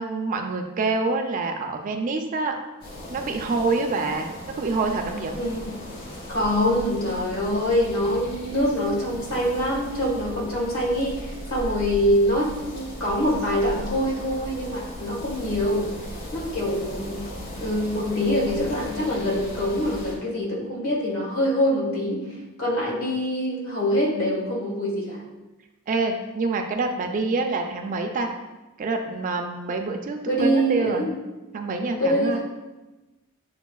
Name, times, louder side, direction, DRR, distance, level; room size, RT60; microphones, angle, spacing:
voice 1, 0.0-2.6 3.1-5.4 25.9-28.3 28.8-31.1 31.5-32.4, right 3 dB, 35° right, 4 dB, 0.3 m, -26 dB
sound 1, 2.8-20.2, equal, 45° left, 1.2 m, -37 dB
voice 2, 5.3-5.8 6.3-15.9 16.3-17.3 17.6-25.2 30.3-31.2 32.0-32.4, equal, 75° left, -4 dB, 1.4 m, -24 dB
6.9 x 2.3 x 2.3 m, 1.1 s
head